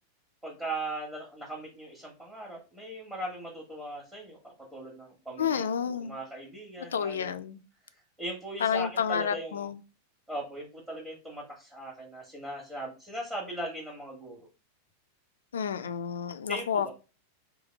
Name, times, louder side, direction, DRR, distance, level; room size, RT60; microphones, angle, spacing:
voice 1, 0.4-7.4 7.9-9.7 10.3-14.5 16.5-16.9, right 1 dB, 10° right, 1.2 m, -39 dB
voice 2, 5.4-6.2 6.9-7.6 8.6-9.8 15.5-16.9, left 7 dB, 65° left, 0.3 m, -30 dB
4.0 x 2.0 x 3.3 m
figure-of-eight pair, 90°, 0 cm